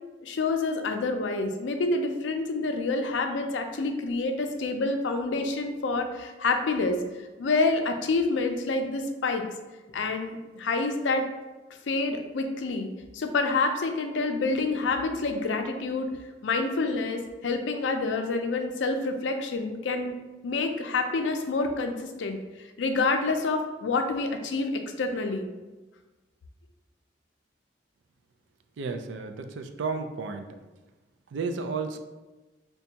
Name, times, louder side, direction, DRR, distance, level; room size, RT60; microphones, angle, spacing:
voice 1, 0.2-7.0 7.4-9.4 9.9-11.3 11.9-12.9 13.1-16.1 16.4-20.1 20.4-25.5, left 3 dB, 85° left, 5 dB, 0.4 m, -28 dB
voice 2, 28.8-30.6 31.3-32.0, right 4 dB, 80° right, 7 dB, 0.3 m, -32 dB
5.1 x 2.2 x 2.8 m, 1.2 s
head